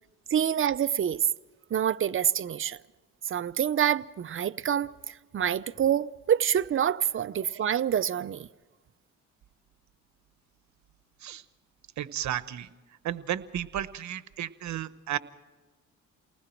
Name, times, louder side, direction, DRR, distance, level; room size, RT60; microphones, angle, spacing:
voice 1, 0.3-1.3 1.7-2.8 3.3-8.5, right 9 dB, 45° right, 0.7 m, -27 dB
voice 2, 12.0-12.7 13.0-15.2, right 11 dB, 70° right, 1.1 m, -33 dB
29.5 x 19.5 x 4.6 m
cardioid pair, 90°, 30 cm